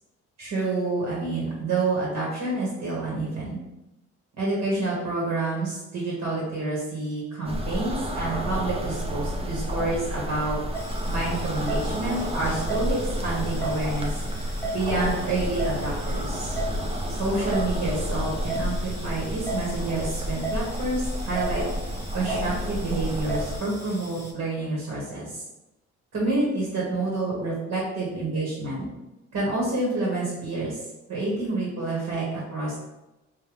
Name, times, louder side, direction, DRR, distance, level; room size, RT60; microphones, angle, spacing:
voice 1, 0.4-3.6 4.4-10.6 11.1-14.1 14.7-16.5 17.2-21.6 22.1-25.4 26.1-28.9 29.3-30.8 31.1-32.8, right 2 dB, 65° right, -5 dB, 1.4 m, -28 dB
sound 1, 7.4-23.6, equal, 20° right, 0.5 m, -30 dB
sound 2, 10.7-24.3, right 1 dB, 10° left, 0.8 m, -37 dB
3.9 x 2.6 x 3.2 m, 0.97 s
cardioid pair, 90°, 30 cm